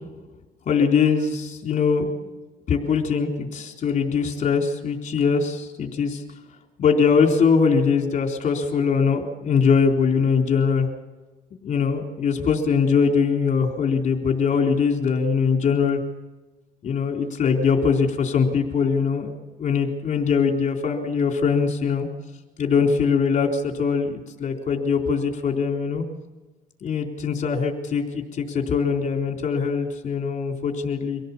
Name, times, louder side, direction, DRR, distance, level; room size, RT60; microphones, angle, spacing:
voice 1, 0.7-2.4 2.7-6.2 6.8-10.9 11.6-16.0 16.8-22.1 22.6-26.0 26.8-31.2, left 5 dB, 45° left, 2 dB, 3.9 m, -22 dB
25.0 x 17.0 x 7.3 m, 1.2 s
cardioid pair, 110°, 17 cm